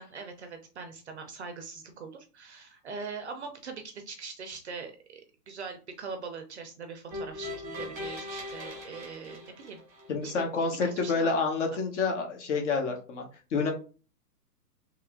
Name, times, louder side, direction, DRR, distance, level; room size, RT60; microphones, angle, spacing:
voice 1, 0.0-5.2 5.5-9.8 10.2-11.4, right 5 dB, 45° right, 6 dB, 0.5 m, -42 dB
sound 1, 7.1-10.3, left 2 dB, 5° right, 0.7 m, -40 dB
voice 2, 10.1-13.2 13.5-13.7, left 4 dB, 45° left, 2 dB, 1.1 m, -28 dB
3.1 x 2.4 x 3.6 m, 0.36 s
hypercardioid pair, 160°, 49 cm